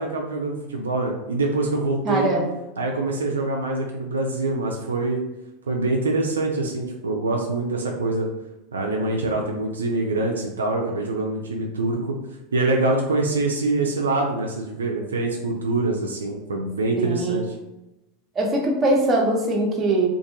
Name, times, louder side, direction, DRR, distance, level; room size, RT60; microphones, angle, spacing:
voice 1, 0.0-2.3 2.8-5.2 5.7-8.3 8.7-12.2 12.5-17.4, right 2 dB, 85° right, 0 dB, 0.4 m, -24 dB
voice 2, 2.0-2.5 17.0-17.4 18.3-20.1, right 2 dB, 30° right, 0 dB, 0.8 m, -22 dB
2.5 x 2.5 x 2.8 m, 0.94 s
hypercardioid pair, 90°, 0 cm